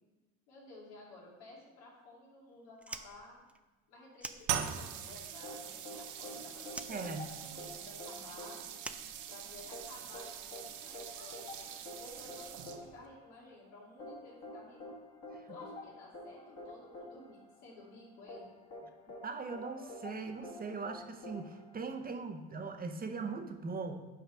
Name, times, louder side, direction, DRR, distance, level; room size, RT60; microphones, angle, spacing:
voice 1, 0.5-3.4 3.9-8.6 9.3-11.7 12.0-14.8 15.5-18.5, left 2 dB, 85° left, -3 dB, 2.6 m, -54 dB
Fire, 2.7-5.1 5.3-6.3 6.7-9.8, right 2 dB, 5° right, 0.3 m, -48 dB
sound 1, 4.4-13.1, right 9 dB, 60° right, 0.8 m, -42 dB
sound 2, 5.4-22.3, left 2 dB, 45° left, 2.0 m, -49 dB
voice 2, 6.9-7.3 15.3-15.5 19.2-23.9, right 4 dB, 25° right, 5 dB, 0.8 m, -40 dB
6.0 x 4.8 x 5.6 m, 1.2 s
supercardioid pair, 100°, 34 cm